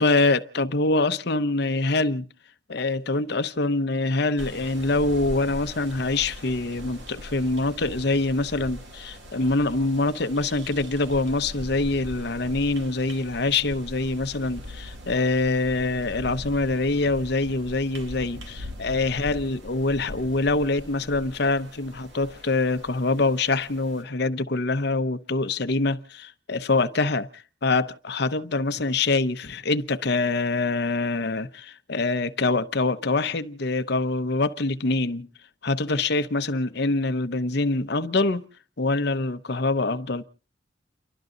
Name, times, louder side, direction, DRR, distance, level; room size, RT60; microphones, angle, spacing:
voice 1, 0.0-2.3 2.7-35.3 35.6-38.5 38.8-40.2, left 3 dB, 60° left, 0.9 m, -25 dB
sound 1, 4.4-24.0, equal, 70° right, 2.4 m, -41 dB
29.5 x 12.0 x 3.9 m
head